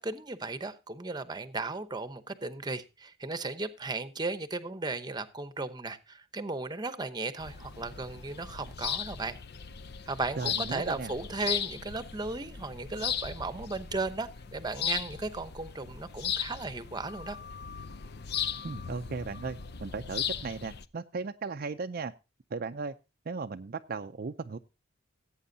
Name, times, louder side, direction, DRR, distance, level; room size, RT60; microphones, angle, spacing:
voice 1, 0.0-9.3 10.1-17.4, right 3 dB, 20° right, 0.8 m, -36 dB
sound 1, 7.4-20.9, left 8 dB, 55° left, 0.6 m, -37 dB
voice 2, 10.4-11.1 18.6-22.1 22.5-22.9 23.3-24.6, right 4 dB, 50° right, 0.5 m, -36 dB
17.0 x 8.6 x 2.7 m
head